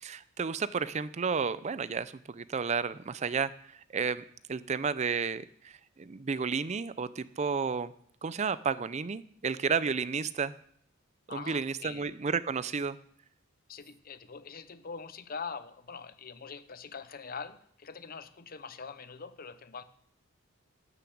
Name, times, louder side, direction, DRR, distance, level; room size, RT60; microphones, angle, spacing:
voice 1, 0.0-3.5 3.9-7.9 8.2-10.5 11.3-13.0, right 5 dB, 30° right, 16 dB, 0.4 m, -32 dB
voice 2, 11.3-12.1 13.7-19.8, left 5 dB, 45° left, 13 dB, 0.7 m, -43 dB
12.0 x 6.9 x 7.9 m, 0.64 s
head